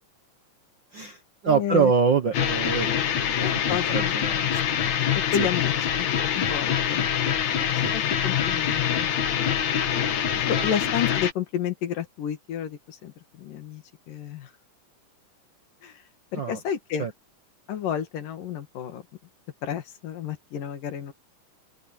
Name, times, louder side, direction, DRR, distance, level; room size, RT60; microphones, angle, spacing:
voice 1, 0.9-4.9 5.4-5.5 7.8-7.9 10.6-10.7 16.3-16.6 17.0-17.1, right 6 dB, 65° right, 1.1 m, -26 dB
voice 2, 1.5-1.9 3.4-4.1 5.3-6.1 6.4-7.1 7.6-9.1 10.5-13.1 13.4-13.8 14.1-14.5 15.8-15.9 16.3-17.1 17.7-19.0 19.6-21.1, left 9 dB, 85° left, 3.7 m, -31 dB
sound 1, 2.3-11.3, left 9 dB, 60° left, 2.8 m, -25 dB
open air
omnidirectional pair, 3.7 m